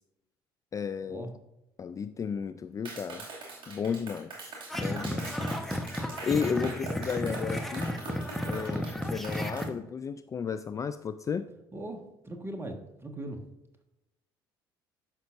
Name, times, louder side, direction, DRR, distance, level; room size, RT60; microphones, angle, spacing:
voice 1, 0.7-1.3 1.8-3.3 3.7-4.3 4.7-5.5 6.2-7.9 8.4-11.5, left 6 dB, 30° left, 11 dB, 0.4 m, -33 dB
Clapping, 2.8-9.7, right 3 dB, 45° right, 2.4 m, -42 dB
sound 1, 4.7-9.7, equal, ahead, 1.1 m, -33 dB
voice 2, 11.7-13.4, right 1 dB, 20° right, 5 dB, 1.5 m, -39 dB
13.0 x 5.8 x 2.6 m, 0.92 s
figure-of-eight pair, 55°, 12 cm